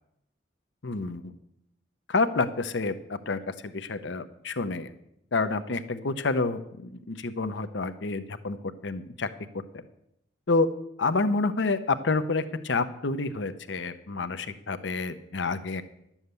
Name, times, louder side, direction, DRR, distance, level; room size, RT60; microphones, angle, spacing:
voice 1, 0.8-1.3 2.1-4.9 5.3-8.6 8.8-9.3 9.7-9.8 10.5-10.7 11.0-15.8, left 3 dB, 75° left, 11 dB, 0.8 m, -28 dB
11.5 x 7.3 x 8.1 m, 0.80 s
head